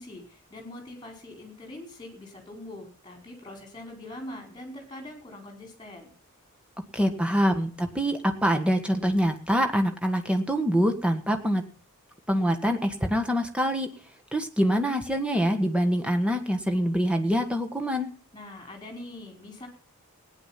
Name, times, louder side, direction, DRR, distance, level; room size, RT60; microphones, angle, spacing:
voice 1, 0.0-6.1 18.3-19.7, left 1 dB, 20° left, 3 dB, 5.0 m, -43 dB
voice 2, 6.9-11.7 12.3-13.9 14.3-18.1, equal, 5° right, 5 dB, 1.6 m, -25 dB
17.5 x 10.0 x 5.9 m, 0.41 s
head